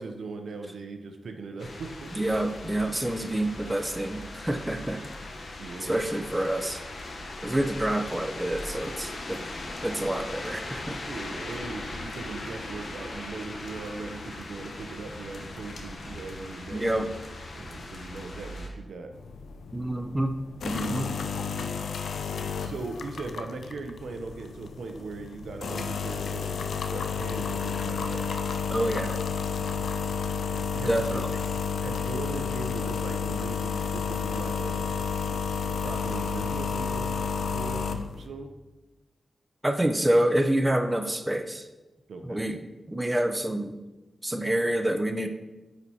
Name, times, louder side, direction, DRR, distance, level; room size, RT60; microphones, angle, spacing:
voice 1, 0.0-2.2 5.6-6.0 11.1-17.0 17.5-19.1 22.6-28.6 30.5-31.2 31.8-34.9 35.7-37.2 37.5-37.9 38.2-38.5 42.1-42.4, right 3 dB, 85° right, 5 dB, 0.6 m, -39 dB
sound 1, 1.6-18.7, left 2 dB, 70° left, 0.8 m, -39 dB
voice 2, 2.2-5.0 5.8-6.8 7.4-9.4 9.8-11.0 16.7-17.1 19.7-20.4 20.6-21.1 28.7-29.2 30.9-31.3 39.6-41.7 42.2-42.6 42.9-43.8 44.2-45.3, right 1 dB, 15° right, 7 dB, 0.5 m, -27 dB
sound 2, 19.1-38.3, left 5 dB, 85° left, 0.3 m, -31 dB
9.0 x 4.3 x 2.8 m, 1.1 s
cardioid pair, 60°, 0 cm